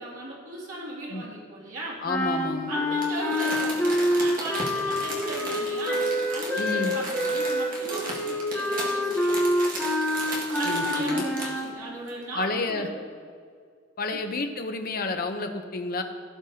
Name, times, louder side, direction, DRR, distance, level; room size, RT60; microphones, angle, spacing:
voice 1, 0.0-2.0 2.7-6.0 6.3-9.4 10.5-12.9 14.1-14.3, right 1 dB, 90° right, -6 dB, 2.7 m, -37 dB
voice 2, 2.0-2.7 6.6-7.0 10.6-11.2 12.4-12.9 14.0-16.0, left 3 dB, 50° left, 5 dB, 0.8 m, -30 dB
sound 1, 2.1-11.7, equal, 5° left, 1.0 m, -26 dB
Crumpling crinkling, 3.0-11.6 12.1-12.2, right 1 dB, 45° right, 1.9 m, -36 dB
16.5 x 6.6 x 2.8 m, 2.1 s
head